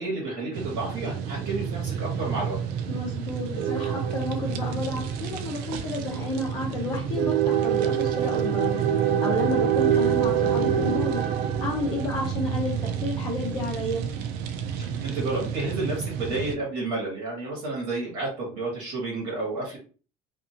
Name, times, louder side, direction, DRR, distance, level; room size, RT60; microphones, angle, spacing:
voice 1, 0.0-2.6 15.0-19.8, right 2 dB, 60° right, -4 dB, 1.4 m, -31 dB
sound 1, 0.5-16.6, right 8 dB, 80° right, 0.4 m, -27 dB
voice 2, 2.9-11.2 11.6-14.0, left 2 dB, 25° left, -4 dB, 0.8 m, -31 dB
2.6 x 2.5 x 2.7 m, 0.37 s
cardioid pair, 175°, 16 cm